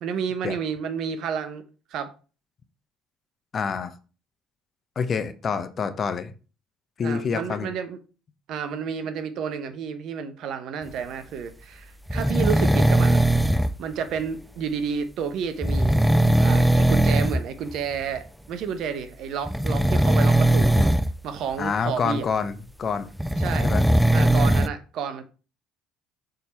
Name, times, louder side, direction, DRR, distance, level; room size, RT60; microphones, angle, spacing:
voice 1, 0.0-1.6 1.9-2.1 7.0-8.0 8.5-13.3 13.8-16.1 16.4-20.9 21.2-22.3 23.4-23.7 24.1-25.2, right 7 dB, 60° right, 0.9 m, -31 dB
voice 2, 3.5-3.9 5.0-6.3 7.0-7.7 21.6-23.1 23.6-23.8, left 5 dB, 40° left, 0.9 m, -27 dB
sound 1, 12.1-13.7 15.6-17.4 17.7-18.0 19.5-21.1 23.2-24.7, right 1 dB, ahead, 0.4 m, -19 dB
6.8 x 3.9 x 4.4 m
hypercardioid pair, 60°, 0 cm